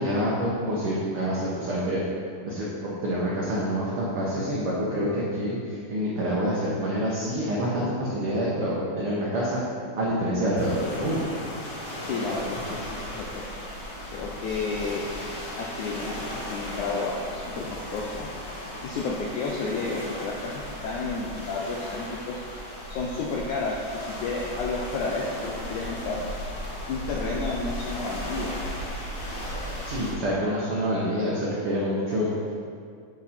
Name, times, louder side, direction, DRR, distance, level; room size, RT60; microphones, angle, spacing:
voice 1, 0.0-2.0 2.4-2.7 3.0-9.6 9.9-11.3 29.8-32.3, equal, 80° right, -6 dB, 1.2 m, -27 dB
sound 1, 10.6-30.1, left 1 dB, 55° left, 1.2 m, -36 dB
voice 2, 12.0-13.4 14.1-15.1 15.6-17.7 17.9-18.3 18.8-22.4 22.9-26.2 26.9-28.5, left 3 dB, 80° left, -2 dB, 1.7 m, -31 dB
7.3 x 7.2 x 4.3 m, 2.3 s
omnidirectional pair, 4.2 m